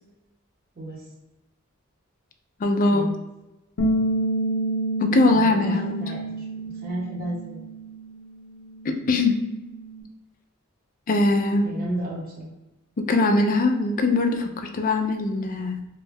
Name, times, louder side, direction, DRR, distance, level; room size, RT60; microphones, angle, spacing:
voice 1, 2.6-3.1 5.0-6.0 8.8-9.4 11.1-11.7 13.1-15.8, left 2 dB, 40° left, 5 dB, 0.4 m, -21 dB
Bass guitar, 3.8-10.0, right 1 dB, 90° left, 0.5 m, -29 dB
voice 2, 5.3-5.7 6.0-7.6 11.6-12.5, right 1 dB, 45° right, -4 dB, 1.0 m, -33 dB
3.0 x 2.3 x 3.3 m, 0.98 s
head